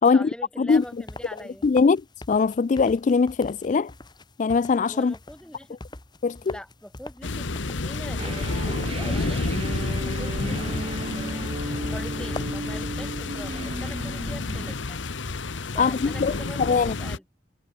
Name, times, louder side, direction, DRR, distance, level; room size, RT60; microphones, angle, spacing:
voice 1, 0.1-1.7 4.8-5.8 6.4-9.4 10.0-11.6 11.9-15.0 15.7-17.2, equal, 5° left, 6.2 m, -43 dB
sound 1, 0.7-12.6, left 2 dB, 25° left, 1.0 m, -45 dB
voice 2, 1.6-3.9 4.4-5.1 6.2-6.4 15.8-17.0, left 5 dB, 40° left, 0.3 m, -21 dB
sound 2, 7.2-17.2, left 3 dB, 80° left, 1.1 m, -30 dB
sound 3, 8.2-14.7, right 1 dB, 30° right, 1.3 m, -35 dB
head